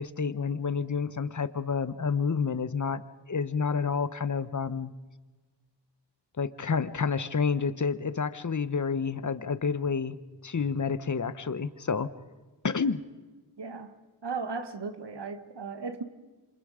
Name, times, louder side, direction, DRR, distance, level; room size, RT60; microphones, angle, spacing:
voice 1, 0.0-4.9 6.4-10.2 10.4-12.1 12.6-13.0, left 5 dB, 45° left, 13 dB, 1.0 m, -29 dB
voice 2, 13.6-14.0 14.2-16.0, right 4 dB, 75° right, 10 dB, 1.6 m, -36 dB
27.0 x 27.0 x 5.0 m, 1.3 s
wide cardioid pair, 70°, 42 cm